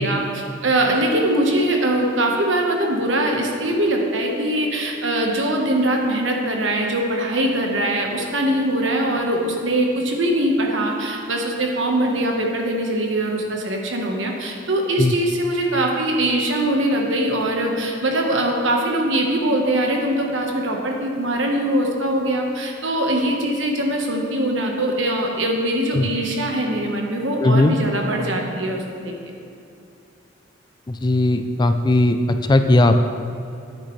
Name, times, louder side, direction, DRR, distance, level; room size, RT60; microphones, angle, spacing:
voice 1, 0.0-29.3, right 1 dB, 75° right, 1 dB, 1.3 m, -22 dB
voice 2, 27.4-27.7 30.9-33.0, left 2 dB, 20° left, 7 dB, 0.4 m, -17 dB
9.7 x 9.0 x 3.2 m, 2.7 s
head